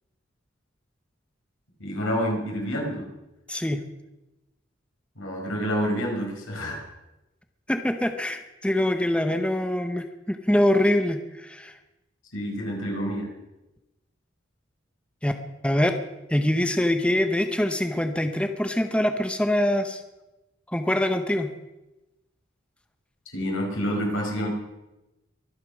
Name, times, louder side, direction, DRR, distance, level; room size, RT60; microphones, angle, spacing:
voice 1, 1.8-3.0 5.2-6.8 12.3-13.3 23.3-24.5, equal, 85° left, 0 dB, 4.8 m, -28 dB
voice 2, 3.5-3.8 7.7-11.8 15.2-15.3 15.6-15.9 16.3-20.0 20.7-21.5, left 1 dB, 5° left, 7 dB, 0.8 m, -24 dB
23.5 x 8.2 x 6.3 m, 0.99 s
head